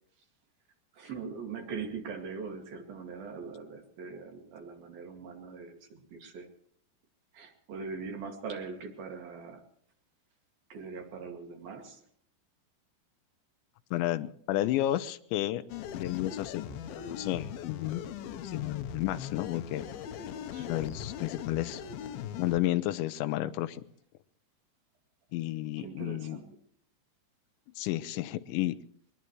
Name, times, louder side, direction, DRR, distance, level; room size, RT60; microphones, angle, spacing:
voice 1, 0.9-6.5 7.3-9.6 10.7-12.0 20.5-20.8 25.8-26.5, right 5 dB, 60° right, 3 dB, 3.9 m, -41 dB
voice 2, 13.9-15.6 15.9-16.6 16.9-18.1 18.4-19.8 20.6-21.8 22.4-23.8 25.3-26.4 27.8-28.7, left 15 dB, 90° left, 10 dB, 3.1 m, -32 dB
sound 1, 15.7-22.6, left 8 dB, 70° left, 2.5 m, -40 dB
22.0 x 21.0 x 3.1 m, 0.63 s
omnidirectional pair, 5.1 m